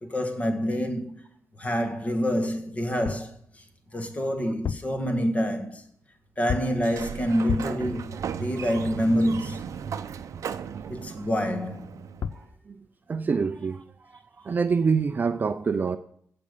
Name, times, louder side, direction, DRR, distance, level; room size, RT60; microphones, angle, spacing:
voice 1, 0.0-1.1 1.6-3.6 3.9-5.8 6.4-9.7 10.9-12.1, equal, 25° left, 1.8 m, -27 dB
sound 1, 3.0-3.4 4.5-5.0 6.5-6.9 7.5-7.9 11.9-12.0 12.2-12.5, left 8 dB, 50° left, 0.5 m, -32 dB
Sliding door, 6.7-12.4, right 7 dB, 70° right, 0.7 m, -36 dB
voice 2, 12.3-12.8 13.1-13.8 14.4-16.0, right 5 dB, 35° right, 0.6 m, -26 dB
16.0 x 5.4 x 8.4 m
wide cardioid pair, 170°, 6 cm